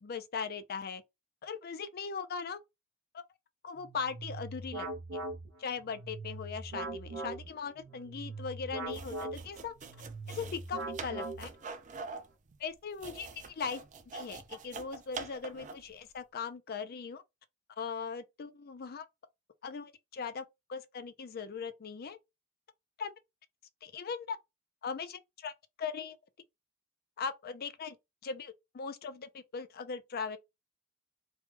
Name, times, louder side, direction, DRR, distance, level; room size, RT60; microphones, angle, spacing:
voice 1, 0.0-1.0 1.4-2.6 3.6-4.9 5.1-5.2 5.6-9.7 10.3-11.5 12.6-13.8 14.1-17.2 17.8-19.1 19.6-22.2 23.0-23.1 23.8-24.4 24.8-25.5 25.8-26.2 27.2-28.0 28.2-30.4, left 5 dB, 50° left, 0.4 m, -39 dB
sound 1, 3.8-11.8, right 2 dB, 80° right, 0.9 m, -41 dB
sound 2, 8.9-15.9, right 4 dB, 40° right, 0.4 m, -45 dB
3.4 x 2.2 x 3.2 m
head